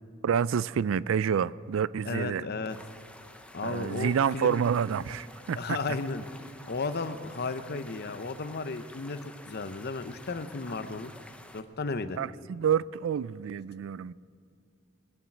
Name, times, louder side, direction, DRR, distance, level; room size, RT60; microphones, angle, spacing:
voice 1, 0.2-2.4 3.6-5.8 12.2-14.1, right 7 dB, 70° right, 0.3 m, -28 dB
voice 2, 2.1-2.8 3.5-4.6 5.6-6.2 6.7-11.1 11.5-12.2, left 3 dB, 50° left, 0.7 m, -34 dB
sound 1, 2.7-11.6, left 1 dB, 5° left, 0.7 m, -50 dB
20.0 x 7.2 x 9.6 m
head